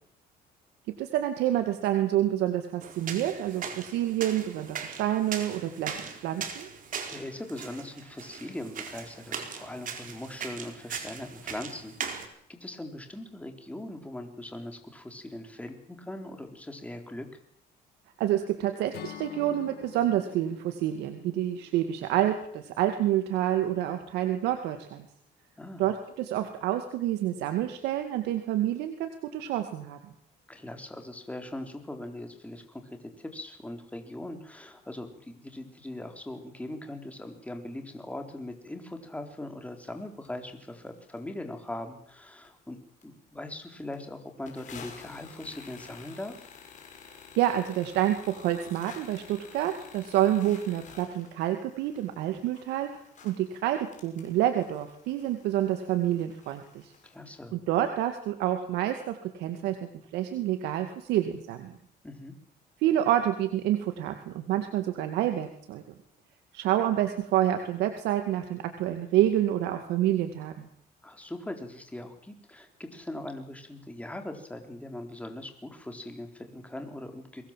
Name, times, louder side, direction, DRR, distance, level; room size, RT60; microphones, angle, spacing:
voice 1, 1.0-6.7 18.2-25.1 25.8-30.0 47.4-56.9 57.5-59.8 60.1-61.8 62.8-65.8 66.5-70.7, right 12 dB, 90° right, 7 dB, 2.2 m, -28 dB
sound 1, 2.8-12.3, right 7 dB, 50° right, 4.3 m, -39 dB
voice 2, 7.1-17.3 25.6-25.9 30.5-42.8 43.0-46.5 57.0-57.6 62.0-62.3 71.0-77.5, left 1 dB, 10° left, 5 dB, 3.9 m, -40 dB
Acoustic guitar / Strum, 18.9-23.0, left 11 dB, 70° left, 3.0 m, -47 dB
sound 2, 39.9-40.0 40.2-40.3 40.8-41.2 41.7-41.8 42.1-42.7 43.0-43.1 43.4-43.5 43.7-44.0 44.5-57.2, left 6 dB, 45° left, 6.5 m, -51 dB
23.5 x 19.5 x 7.5 m, 0.68 s
cardioid pair, 110°, 17 cm